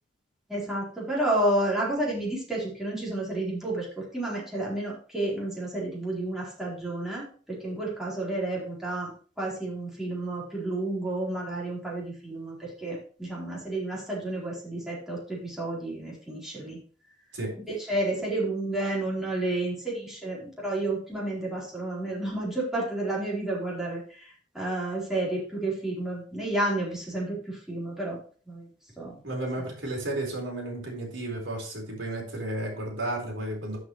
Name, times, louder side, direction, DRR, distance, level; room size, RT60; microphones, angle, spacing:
voice 1, 0.5-9.1 9.4-16.8 17.7-24.3 24.5-28.2 28.5-28.7 29.0-29.2, right 2 dB, ahead, -7 dB, 4.2 m, -31 dB
voice 2, 29.2-33.8, right 1 dB, 75° right, -1 dB, 4.3 m, -33 dB
12.5 x 6.4 x 3.2 m, 0.41 s
head